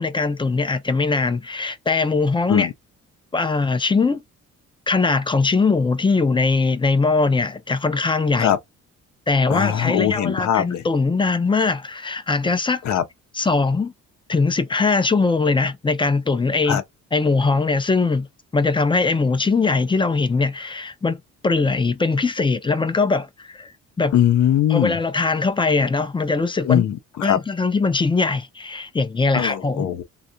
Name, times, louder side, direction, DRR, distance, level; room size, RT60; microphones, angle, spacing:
voice 1, 0.0-2.7 3.3-4.2 4.9-8.5 9.3-12.8 13.3-13.9 14.3-16.8 17.1-18.3 18.5-21.2 21.4-23.7 24.0-24.1 24.7-26.8 27.2-29.9, left 4 dB, 15° left, 0.5 m, -21 dB
voice 2, 9.5-10.8 12.8-13.0 16.7-16.8 24.1-25.0 26.6-27.4 29.3-30.0, left 10 dB, 65° left, 0.7 m, -20 dB
3.4 x 2.4 x 2.6 m
cardioid pair, 90°, 30 cm